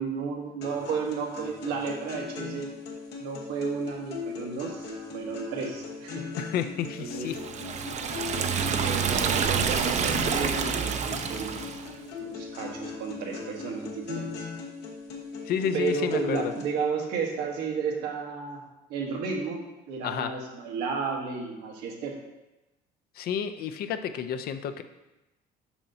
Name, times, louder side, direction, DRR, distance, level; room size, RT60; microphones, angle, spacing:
voice 1, 0.0-2.7 3.2-4.9 5.1-6.2 7.0-7.3 8.8-11.8 12.2-14.5 15.7-18.6 18.9-19.6 19.9-22.1, right 5 dB, 90° right, 0 dB, 1.2 m, -32 dB
sound 1, 0.6-16.6, left 5 dB, 80° left, 1.2 m, -39 dB
voice 2, 6.4-7.4 15.5-16.5 20.0-20.3 23.2-24.8, left 8 dB, 65° left, 10 dB, 0.5 m, -30 dB
Liquid, 7.3-11.9, right 7 dB, 45° right, 0.5 m, -28 dB
7.1 x 5.5 x 2.7 m, 0.99 s
cardioid pair, 110°, 17 cm